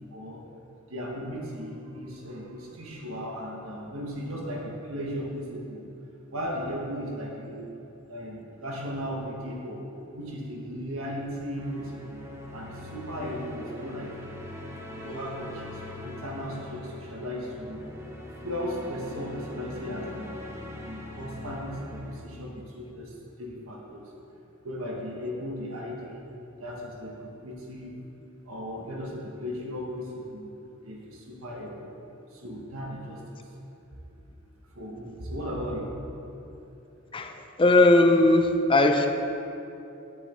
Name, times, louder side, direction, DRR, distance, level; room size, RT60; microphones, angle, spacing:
voice 1, 0.1-0.5 0.9-5.8 6.3-7.7 8.0-9.8 10.1-12.2 12.5-14.4 14.8-17.9 18.4-20.4 20.8-24.1 24.6-26.2 26.6-28.0 28.4-30.5 30.8-31.9 32.3-33.5 34.7-35.9, equal, 70° right, -2 dB, 1.4 m, -36 dB
sound 1, 11.6-22.2, left 1 dB, 10° right, 0.9 m, -42 dB
voice 2, 37.1-39.1, left 2 dB, 25° left, 5 dB, 0.5 m, -19 dB
10.5 x 7.0 x 4.4 m, 2.9 s
head